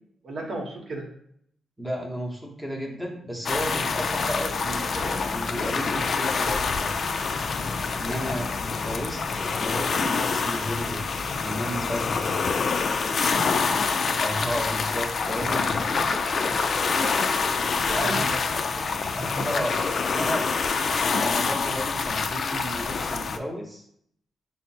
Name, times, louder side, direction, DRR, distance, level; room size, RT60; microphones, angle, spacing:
voice 1, 0.2-1.1 8.0-8.5 13.3-13.6 17.9-18.6, right 2 dB, 55° right, 0 dB, 0.9 m, -34 dB
voice 2, 1.8-7.0 7.9-11.1 11.4-12.4 14.2-17.7 18.0-18.3 19.2-19.9 20.2-20.5 21.1-23.9, equal, ahead, -2 dB, 0.8 m, -33 dB
sound 1, 3.5-23.4, left 4 dB, 50° left, 0.3 m, -26 dB
5.0 x 2.0 x 4.2 m, 0.68 s
cardioid pair, 100°, 0 cm